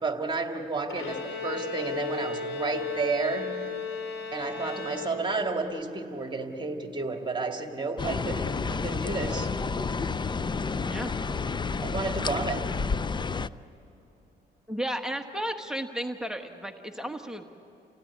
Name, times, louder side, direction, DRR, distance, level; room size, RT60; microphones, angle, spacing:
voice 1, 0.0-3.5 4.3-9.5 11.8-12.6, right 3 dB, 25° right, 4 dB, 2.3 m, -31 dB
Bowed string instrument, 0.9-5.6, left 4 dB, 80° left, 4.0 m, -35 dB
sound 1, 8.0-13.5, left 4 dB, 25° left, 0.5 m, -30 dB
voice 2, 14.7-17.4, right 1 dB, 5° right, 5 dB, 1.3 m, -33 dB
29.0 x 16.5 x 9.6 m, 3.0 s
cardioid pair, 90°, 20 cm